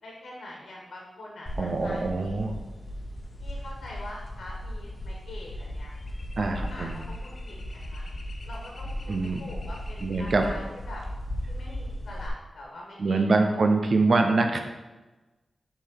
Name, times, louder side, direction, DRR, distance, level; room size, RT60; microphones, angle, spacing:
voice 1, 0.0-2.4 3.4-5.9 6.3-8.1 8.4-10.6 10.9-11.0 11.5-13.3 13.5-13.6, left 1 dB, 80° left, -2 dB, 1.5 m, -44 dB
sound 1, 1.5-12.3, left 1 dB, 45° left, 1.0 m, -36 dB
voice 2, 1.6-2.6 6.4-7.0 9.1-9.4 10.0-10.4 13.0-14.6, right 3 dB, 60° right, 4 dB, 0.6 m, -24 dB
7.1 x 3.8 x 5.5 m, 1.1 s
wide cardioid pair, 105°, 0 cm